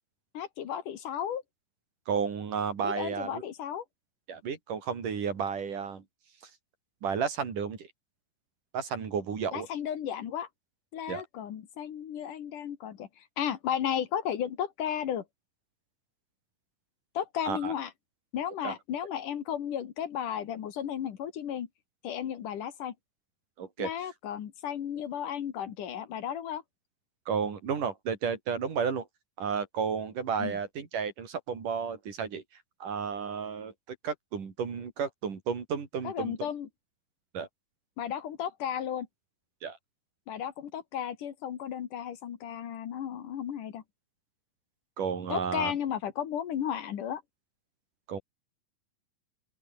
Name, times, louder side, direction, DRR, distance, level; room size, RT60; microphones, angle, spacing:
voice 1, 0.3-1.4 2.8-3.8 9.5-10.5 10.9-15.2 17.1-17.9 18.3-21.7 22.0-22.9 23.8-26.6 30.4-30.6 36.0-36.7 38.0-39.1 40.3-43.8 45.3-47.2, left 9 dB, 65° left, 3.3 m, -34 dB
voice 2, 2.1-3.4 4.3-6.0 7.0-7.9 8.7-9.7 11.1-11.2 17.4-17.7 18.6-18.7 23.6-23.9 27.3-29.1 29.4-32.4 32.8-36.5 37.3-37.5 39.6-39.8 45.0-45.7 48.1-48.2, right 6 dB, 65° right, 5.0 m, -32 dB
open air
omnidirectional pair, 4.0 m